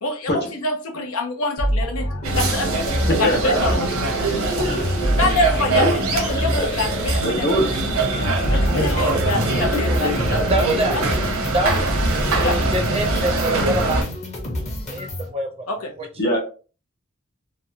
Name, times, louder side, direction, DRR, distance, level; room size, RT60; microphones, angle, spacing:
voice 1, 0.0-2.8 3.2-3.9 4.5-4.7 5.1-7.8 8.1-10.4 10.9-11.1 11.6-11.8 12.4-12.6 15.7-15.9, left 2 dB, 85° left, 3 dB, 0.6 m, -26 dB
sound 1, 1.6-15.3, equal, 35° left, 0.8 m, -26 dB
sound 2, 2.2-14.0, right 3 dB, 80° right, 0.8 m, -23 dB
voice 2, 3.1-3.8 4.3-5.3 5.8-6.0 6.3-6.7 7.2-7.7 8.5-8.9 16.2-16.4, equal, 50° left, 0 dB, 1.2 m, -24 dB
voice 3, 10.5-11.0 11.5-11.8 12.4-14.0 14.9-15.5, right 1 dB, 30° right, 3 dB, 0.5 m, -24 dB
3.0 x 2.2 x 2.7 m, 0.36 s
head